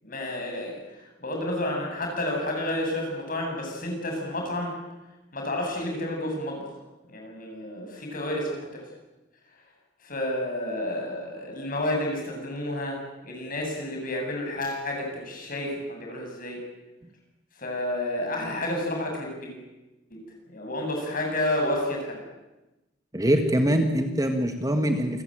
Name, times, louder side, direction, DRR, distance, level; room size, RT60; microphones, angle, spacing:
voice 1, 0.0-4.8 5.3-6.8 7.1-8.8 10.0-16.6 17.5-19.6 20.1-20.2 20.5-22.2, left 1 dB, 45° left, 1 dB, 8.0 m, -30 dB
voice 2, 23.1-25.2, equal, 20° right, 6 dB, 1.8 m, -23 dB
28.0 x 15.5 x 9.0 m, 1.0 s
head